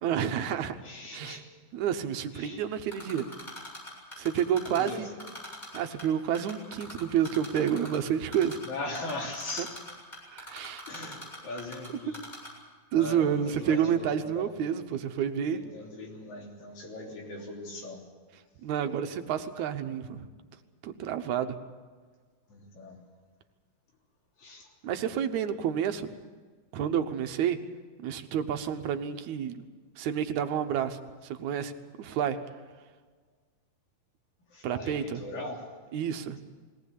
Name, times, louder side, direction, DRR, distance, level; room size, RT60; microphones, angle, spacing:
voice 1, 0.0-0.8 1.1-1.4 1.7-3.3 4.2-5.1 5.7-8.6 10.3-10.9 12.9-15.6 18.6-20.3 20.8-21.6 24.8-26.1 26.7-27.6 28.0-29.6 30.0-31.7 32.0-32.4 34.6-35.2 35.9-36.4, right 8 dB, 80° right, 8 dB, 2.4 m, -29 dB
voice 2, 0.8-1.4 2.3-2.6 4.7-5.0 8.6-9.7 10.9-12.2 13.0-14.5 15.5-18.0 22.5-23.0 24.4-24.7 34.5-35.6, left 2 dB, 75° left, 0 dB, 4.7 m, -39 dB
Typing, 2.9-4.9 5.2-6.0 6.3-8.0 8.3-8.7 8.9-11.9 12.1-12.5, left 1 dB, 15° left, 7.6 m, -42 dB
21.0 x 18.0 x 8.3 m, 1.5 s
omnidirectional pair, 3.4 m